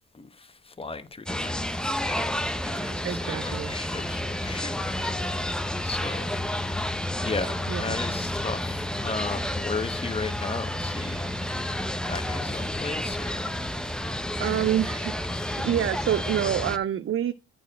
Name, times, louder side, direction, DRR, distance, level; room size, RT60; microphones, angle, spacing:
voice 1, 0.1-2.4 2.6-6.4 6.7-6.8 7.2-11.3 11.6-11.8 12.1-13.5, left 4 dB, 20° left, 1.0 m, -36 dB
sound 1, 1.3-16.8, left 1 dB, 5° left, 0.6 m, -30 dB
voice 2, 2.9-3.7 7.7-7.9 12.0-12.1 14.4-15.1 15.6-17.3, right 11 dB, 45° right, 0.5 m, -27 dB
8.9 x 4.4 x 6.4 m
cardioid pair, 90°, 30 cm